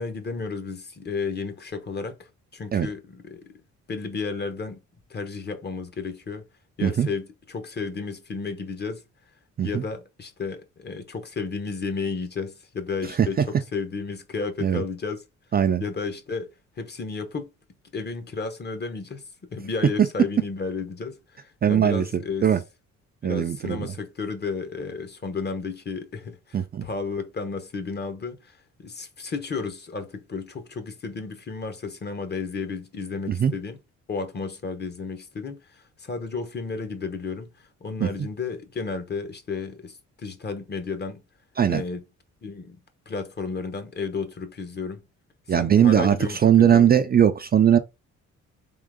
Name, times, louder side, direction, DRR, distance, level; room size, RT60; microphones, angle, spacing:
voice 1, 0.0-3.5 3.9-4.8 5.1-6.5 6.8-9.0 9.6-15.2 15.8-17.5 17.9-19.2 19.5-22.5 23.2-33.8 34.1-41.2 41.7-42.0 42.4-42.8 43.1-45.0 45.5-46.9, left 4 dB, 35° left, 1.0 m, -33 dB
voice 2, 21.6-22.1 22.4-22.6 23.2-23.9 26.5-26.8 33.3-33.5 38.0-38.1 41.6-41.8 45.5-46.2 46.4-47.8, right 9 dB, 30° right, 0.4 m, -19 dB
3.7 x 3.0 x 3.6 m
cardioid pair, 90°, 30 cm